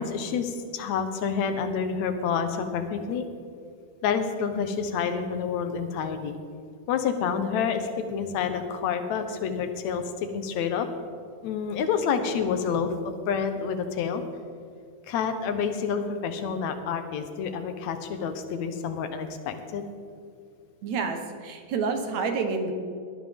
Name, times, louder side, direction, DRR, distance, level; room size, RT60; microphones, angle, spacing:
voice 1, 0.0-3.3 4.0-6.4 6.9-10.9 11.4-14.2 15.1-19.8, left 6 dB, 70° left, 7 dB, 2.1 m, -28 dB
voice 2, 20.8-22.7, right 4 dB, 70° right, 6 dB, 2.3 m, -28 dB
18.0 x 12.0 x 3.5 m, 2.3 s
omnidirectional pair, 3.6 m